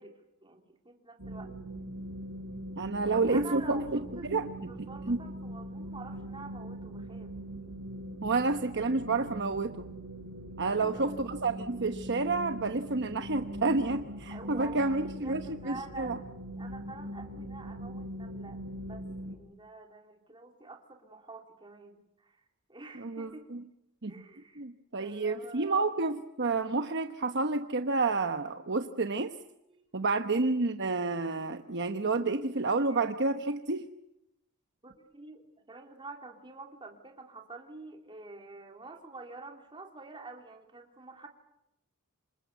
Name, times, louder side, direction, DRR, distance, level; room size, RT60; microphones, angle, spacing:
voice 1, 0.0-1.5 3.0-4.3 4.7-7.3 10.6-11.2 14.3-22.4 22.7-23.4 24.1-24.6 25.0-25.9 29.7-29.9 32.9-33.0 34.8-41.3, right 3 dB, 20° right, 2 dB, 3.3 m, -48 dB
sound 1, 1.2-19.4, right 1 dB, 75° right, 4.9 m, -42 dB
voice 2, 2.8-4.0 4.3-4.5 4.8-5.2 8.2-9.9 10.6-16.2 23.0-23.6 24.0-24.2 24.6-29.3 29.9-33.8, right 3 dB, 50° right, 7 dB, 1.1 m, -30 dB
27.0 x 27.0 x 8.2 m, 0.86 s
head